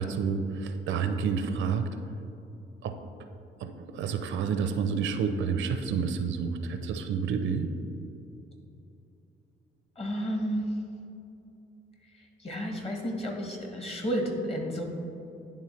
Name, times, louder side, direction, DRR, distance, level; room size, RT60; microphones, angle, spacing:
voice 1, 0.0-1.9 2.8-2.9 3.6-7.7, right 6 dB, 75° right, 8 dB, 0.5 m, -29 dB
voice 2, 10.0-10.8 12.0-14.9, equal, 30° left, 1 dB, 1.2 m, -32 dB
10.0 x 3.5 x 3.1 m, 2.8 s
cardioid pair, 90°, 20 cm